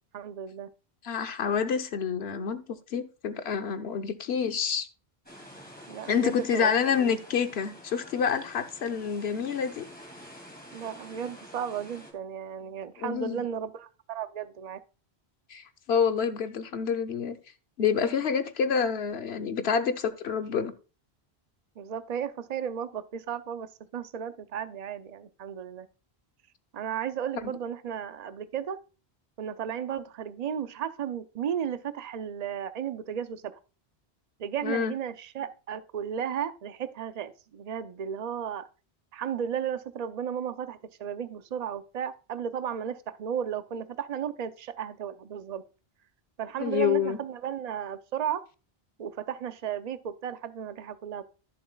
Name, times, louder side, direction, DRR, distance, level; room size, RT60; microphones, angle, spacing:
voice 1, 0.1-0.7 5.9-7.2 10.7-14.8 21.8-25.9 26.7-28.8 29.4-33.6 34.4-38.7 39.1-45.6 46.4-48.4 49.0-51.2, right 8 dB, 45° right, 0.6 m, -34 dB
voice 2, 1.0-4.9 6.1-9.9 13.0-13.5 15.5-17.4 17.8-20.7 27.3-27.5 34.6-34.9 46.6-47.2, left 7 dB, 75° left, 1.1 m, -28 dB
sound 1, 5.3-12.1, equal, 10° left, 2.4 m, -48 dB
14.5 x 7.0 x 2.3 m
omnidirectional pair, 1.1 m